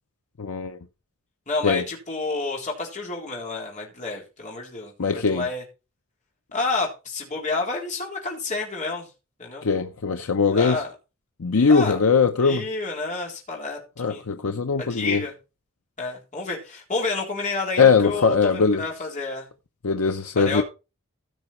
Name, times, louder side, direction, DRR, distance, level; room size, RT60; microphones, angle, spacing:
voice 1, 0.4-0.8 1.6-1.8 5.0-5.5 9.6-10.8 11.4-12.7 14.0-15.3 17.8-18.8 19.8-20.6, left 5 dB, 85° left, 0.7 m, -20 dB
voice 2, 1.5-5.6 6.5-9.1 9.4-9.7 10.5-10.9 11.7-12.0 12.4-14.2 14.8-15.3 16.0-19.5 20.3-20.6, left 3 dB, 35° left, 4.0 m, -30 dB
15.5 x 6.1 x 4.3 m
head